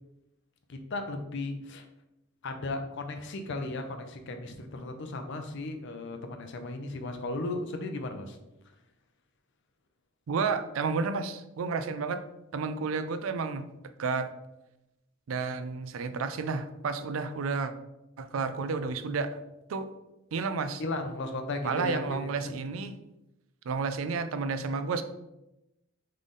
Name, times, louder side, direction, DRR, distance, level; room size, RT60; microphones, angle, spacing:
voice 1, 0.7-1.8 2.4-8.4 20.8-22.3, left 2 dB, 65° left, 6 dB, 0.6 m, -35 dB
voice 2, 10.3-12.2 12.5-13.7 14.0-14.3 15.3-17.7 18.2-19.4 19.7-19.9 20.3-20.8 21.6-22.9 23.7-25.0, right 4 dB, 80° right, 10 dB, 0.4 m, -31 dB
3.6 x 3.3 x 3.9 m, 0.91 s
head